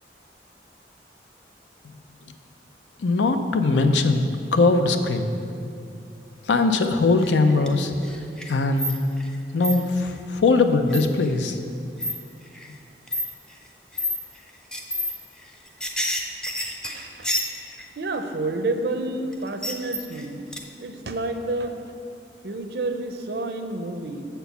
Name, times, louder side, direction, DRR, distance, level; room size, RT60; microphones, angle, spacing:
voice 1, 3.0-5.3 6.5-7.9 8.5-8.9 9.5-11.6, left 3 dB, 90° left, 7 dB, 0.6 m, -20 dB
sound 1, 7.2-7.7 8.0-9.3 9.6-9.7 10.9-11.3 12.0-12.1 12.5-12.7 13.1-13.3 13.9-14.2 14.7-15.1 15.4-17.8 19.3-20.2 20.5-20.6, left 1 dB, 5° left, 0.4 m, -28 dB
voice 2, 16.8-17.4 18.0-20.4 20.8-21.8 22.4-24.3, right 2 dB, 60° right, 6 dB, 0.6 m, -29 dB
6.8 x 4.5 x 6.8 m, 2.5 s
head